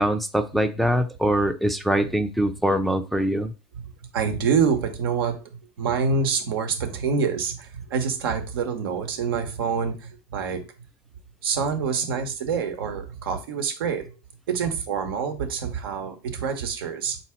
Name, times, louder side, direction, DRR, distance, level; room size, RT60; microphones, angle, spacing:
voice 1, 0.0-3.5, equal, ahead, 6 dB, 0.4 m, -23 dB
voice 2, 4.1-10.7 11.4-14.1 14.5-17.2, right 6 dB, 90° right, 5 dB, 0.8 m, -26 dB
3.6 x 2.8 x 4.3 m, 0.31 s
supercardioid pair, 100°, 12 cm